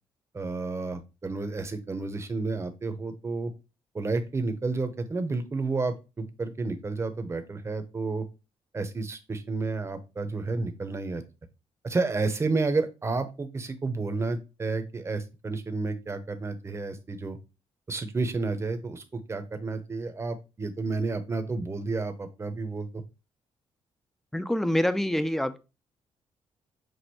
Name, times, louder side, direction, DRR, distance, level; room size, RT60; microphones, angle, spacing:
voice 1, 0.3-3.5 3.9-8.2 8.7-11.2 11.8-17.4 17.9-19.0 19.3-22.9, right 3 dB, 25° right, 8 dB, 0.7 m, -31 dB
voice 2, 24.3-25.6, left 1 dB, 5° left, 11 dB, 0.4 m, -26 dB
6.2 x 2.5 x 2.8 m, 0.28 s
cardioid pair, 100°, 11 cm